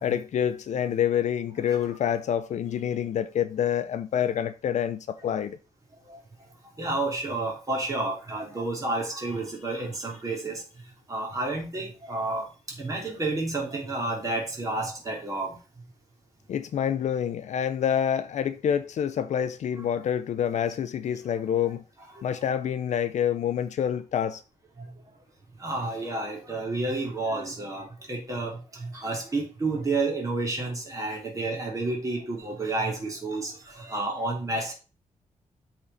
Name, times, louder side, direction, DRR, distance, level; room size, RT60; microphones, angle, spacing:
voice 1, 0.0-5.6 16.5-21.8 22.2-24.4, left 9 dB, 65° left, 0.6 m, -27 dB
voice 2, 6.8-10.6 11.1-12.4 12.8-15.6 22.1-22.2 25.6-34.7, right 2 dB, 25° right, 3.0 m, -30 dB
12.5 x 4.5 x 4.2 m
wide cardioid pair, 170°, 13 cm